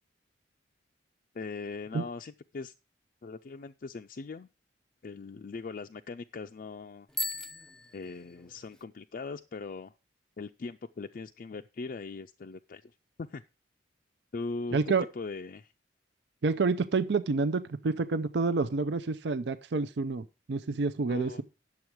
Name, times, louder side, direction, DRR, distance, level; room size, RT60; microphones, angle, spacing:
voice 1, 1.3-2.7 3.2-4.5 5.0-7.1 7.9-9.9 10.4-12.9 13.2-13.4 14.3-15.7 21.1-21.4, left 4 dB, 50° left, 0.4 m, -40 dB
Bicycle bell, 7.1-8.8, left 1 dB, 5° left, 0.7 m, -38 dB
voice 2, 14.7-15.1 16.4-21.4, right 4 dB, 65° right, 0.5 m, -28 dB
10.5 x 7.1 x 4.6 m
head